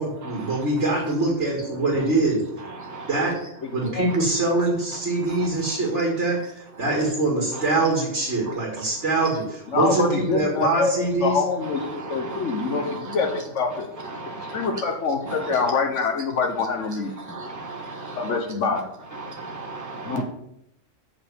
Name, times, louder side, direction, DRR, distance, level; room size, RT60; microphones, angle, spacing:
voice 1, 0.0-2.4 3.1-3.3 3.7-11.4, right 2 dB, 65° right, -2 dB, 2.3 m, -23 dB
voice 2, 3.6-4.1 9.7-10.9 11.2-13.9 14.4-17.1 18.2-18.9 20.0-20.2, left 4 dB, 75° left, 4 dB, 1.5 m, -25 dB
voice 3, 12.0-13.0 14.1-14.7 15.3-15.4 17.3-18.3 19.2-20.2, right 3 dB, 15° right, 0 dB, 1.4 m, -36 dB
7.2 x 5.7 x 6.9 m, 0.77 s
omnidirectional pair, 1.3 m